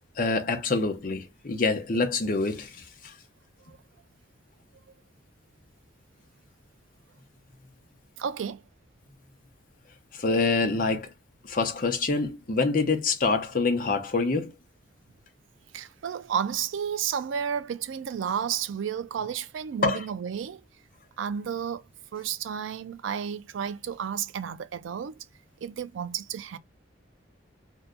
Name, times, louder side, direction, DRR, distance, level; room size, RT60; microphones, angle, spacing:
voice 1, 0.2-2.7 3.0-3.1 10.1-11.1 11.5-14.5 19.8-20.0, left 3 dB, 45° left, 0.7 m, -26 dB
voice 2, 8.2-8.6 15.7-20.6 21.2-21.8 22.1-25.2 25.6-26.6, right 8 dB, 75° right, 0.3 m, -32 dB
2.7 x 2.2 x 3.6 m
head